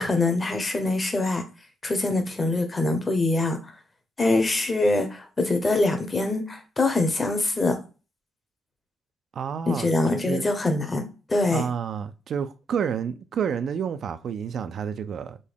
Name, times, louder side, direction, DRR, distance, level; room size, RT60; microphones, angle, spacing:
voice 1, 0.0-1.4 1.8-3.6 4.2-7.8 9.7-11.0 11.3-11.6, left 2 dB, 25° left, 0.8 m, -24 dB
voice 2, 9.4-10.5 11.5-15.4, right 7 dB, 60° right, 0.3 m, -30 dB
3.7 x 2.2 x 3.4 m
cardioid pair, 90°, 0 cm